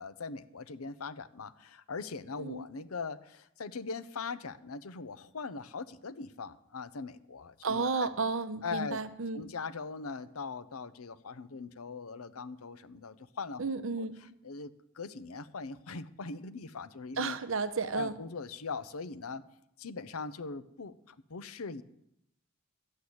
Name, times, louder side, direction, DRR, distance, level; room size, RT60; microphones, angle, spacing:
voice 1, 0.0-8.1 8.6-9.0 9.3-13.6 14.4-14.7 14.9-17.4 17.9-19.4 19.8-21.8, left 4 dB, 90° left, 14 dB, 0.8 m, -40 dB
voice 2, 7.6-9.5 13.6-14.2 17.2-18.2, right 4 dB, 65° right, 12 dB, 0.8 m, -33 dB
11.5 x 8.0 x 8.6 m, 0.79 s
head